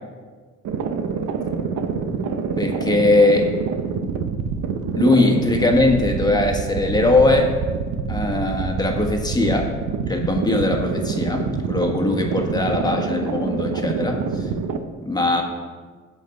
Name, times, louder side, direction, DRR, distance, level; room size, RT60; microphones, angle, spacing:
sound 1, 0.6-14.8, right 5 dB, 75° right, 0.8 m, -26 dB
voice 1, 2.6-3.5 5.0-7.5 8.1-9.7 10.1-14.2 15.0-15.4, left 2 dB, 15° left, 2 dB, 1.5 m, -20 dB
16.0 x 5.4 x 3.9 m, 1.5 s
cardioid pair, 90°, 30 cm